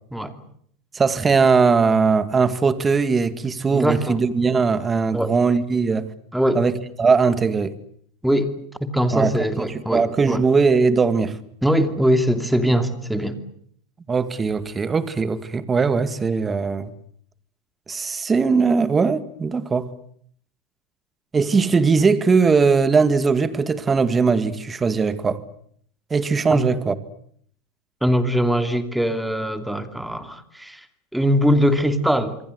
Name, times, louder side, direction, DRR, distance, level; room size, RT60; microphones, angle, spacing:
voice 1, 0.9-6.1 6.5-7.7 9.1-11.4 14.1-16.9 17.9-19.9 21.3-25.4 26.1-26.9, right 5 dB, 20° right, 2.1 m, -20 dB
voice 2, 3.7-4.2 5.1-5.3 6.3-6.6 8.2-8.5 8.8-10.4 11.6-13.4 26.5-26.6 28.0-30.9 31.1-32.4, equal, 5° right, 2.7 m, -21 dB
27.0 x 23.5 x 8.2 m
supercardioid pair, 130°, 0 cm